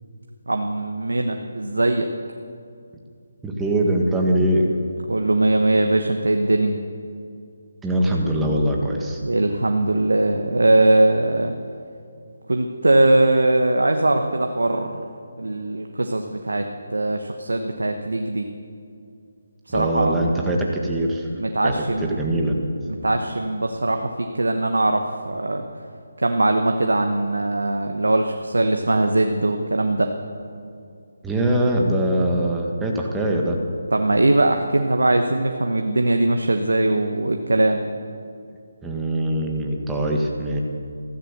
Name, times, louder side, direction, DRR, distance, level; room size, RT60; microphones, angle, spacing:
voice 1, 0.5-2.1 5.1-6.8 9.2-11.5 12.5-14.9 15.4-18.5 19.7-20.1 21.3-22.1 22.9-25.6 26.2-30.1 33.9-37.8, right 2 dB, 90° right, 4 dB, 1.1 m, -21 dB
voice 2, 3.4-4.7 7.8-9.2 19.7-21.3 21.6-22.6 31.2-33.6 38.8-40.6, right 1 dB, 5° right, 0 dB, 1.6 m, -22 dB
14.5 x 14.0 x 6.7 m, 2.4 s
figure-of-eight pair, 160°, 0 cm